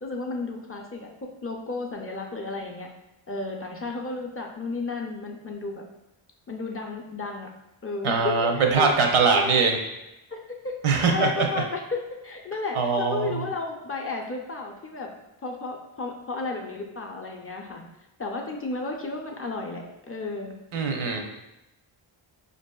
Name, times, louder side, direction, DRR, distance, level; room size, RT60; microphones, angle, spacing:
voice 1, 0.0-2.9 3.3-5.8 6.5-7.5 7.8-9.7 10.3-15.1 15.4-17.8 18.2-20.5, left 3 dB, 30° left, 0 dB, 0.4 m, -33 dB
voice 2, 8.0-9.8 10.8-11.5 12.7-13.4 20.7-21.2, right 5 dB, 80° right, 3 dB, 0.7 m, -22 dB
4.8 x 2.6 x 2.2 m, 0.90 s
wide cardioid pair, 90°, 49 cm